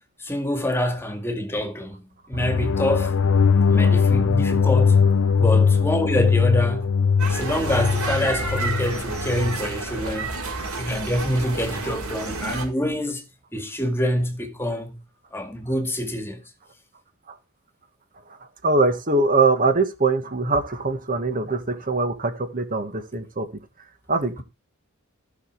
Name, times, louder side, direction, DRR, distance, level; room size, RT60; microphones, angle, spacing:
voice 1, 0.2-3.2 3.7-5.0 5.4-6.9 7.3-10.4 10.8-13.2 13.5-15.0 15.3-16.4, equal, 10° left, 2.0 m, -26 dB
sound 1, 2.3-9.6, left 5 dB, 65° left, 0.6 m, -20 dB
sound 2, 7.2-12.7, right 3 dB, 80° right, 4.6 m, -30 dB
voice 2, 18.6-23.5 24.1-24.4, right 3 dB, 40° right, 1.7 m, -22 dB
15.5 x 6.3 x 4.7 m
head